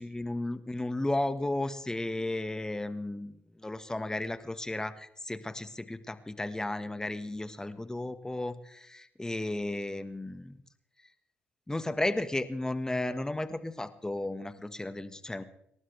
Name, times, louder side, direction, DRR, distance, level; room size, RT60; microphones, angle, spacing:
voice 1, 0.0-10.6 11.7-15.4, left 2 dB, 15° left, 10 dB, 1.6 m, -34 dB
29.5 x 12.5 x 3.5 m, 0.74 s
supercardioid pair, 60°, 5 cm